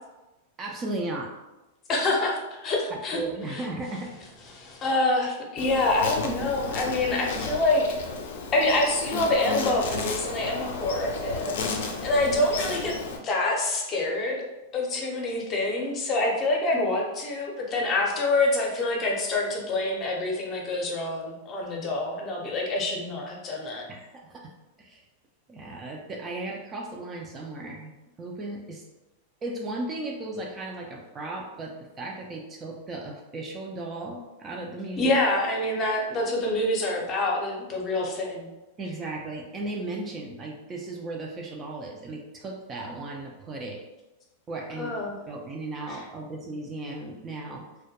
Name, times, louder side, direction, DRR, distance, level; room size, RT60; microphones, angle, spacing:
voice 1, 0.6-1.3 2.9-4.2 23.9-24.5 24.8-25.0 25.5-27.9 28.2-28.8 29.4-35.2 38.8-43.8 44.5-47.7, right 2 dB, 25° right, 0 dB, 0.3 m, -36 dB
voice 2, 1.9-3.2 3.5-3.7 4.5-7.8 8.5-12.9 13.2-14.4 14.7-23.8 35.0-38.5 44.7-45.1 45.9-46.0, left 2 dB, 30° left, -1 dB, 0.6 m, -26 dB
Insect, 5.6-13.2, left 4 dB, 75° left, 0.4 m, -33 dB
2.2 x 2.1 x 2.7 m, 1.0 s
hypercardioid pair, 125°, 0 cm